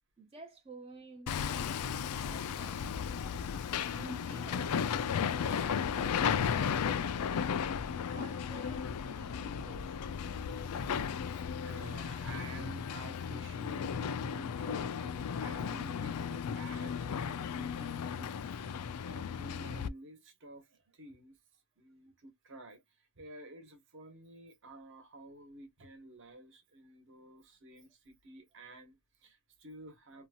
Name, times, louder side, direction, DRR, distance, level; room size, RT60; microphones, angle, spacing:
voice 1, 0.2-1.5 2.0-2.9 3.6-4.8 5.3-7.6 8.1-10.2 19.0-19.1, right 3 dB, 25° right, 0.4 m, -52 dB
Hammer, 1.3-19.9, left 7 dB, 80° left, 0.4 m, -35 dB
voice 2, 10.1-17.0 17.3-18.3 19.0-21.3 21.8-30.3, right 1 dB, 60° right, 1.1 m, -51 dB
2.7 x 2.3 x 2.8 m
head